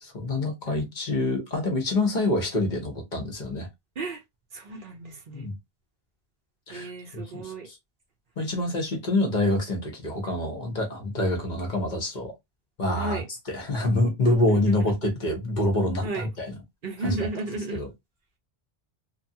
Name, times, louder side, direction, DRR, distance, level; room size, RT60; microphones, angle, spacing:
voice 1, 0.0-3.7 5.3-5.5 6.7-6.9 7.3-7.5 8.4-12.3 12.8-13.2 13.5-16.6 17.0-17.2 17.7-17.9, left 2 dB, 50° left, 1.0 m, -26 dB
voice 2, 4.5-5.5 6.7-7.7 13.0-13.3 14.6-14.9 16.0-16.3 16.8-17.8, right 3 dB, 60° right, 0.9 m, -34 dB
2.9 x 2.2 x 2.7 m
omnidirectional pair, 1.0 m